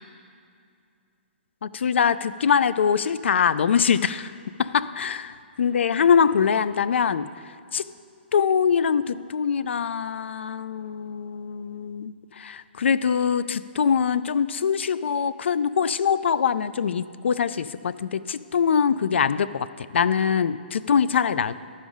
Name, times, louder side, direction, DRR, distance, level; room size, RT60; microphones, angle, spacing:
voice 1, 1.6-4.3 4.6-7.3 7.7-7.8 8.3-21.6, left 7 dB, 80° left, 15 dB, 0.3 m, -23 dB
12.5 x 5.0 x 5.4 m, 2.4 s
hypercardioid pair, 160°, 6 cm